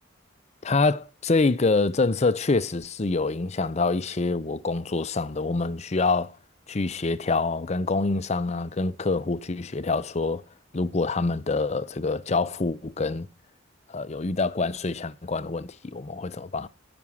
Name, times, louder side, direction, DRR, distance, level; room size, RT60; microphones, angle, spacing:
voice 1, 0.6-6.4 6.7-10.4 10.7-13.3 13.9-16.7, left 3 dB, 35° left, 0.6 m, -26 dB
9.1 x 6.0 x 8.4 m
head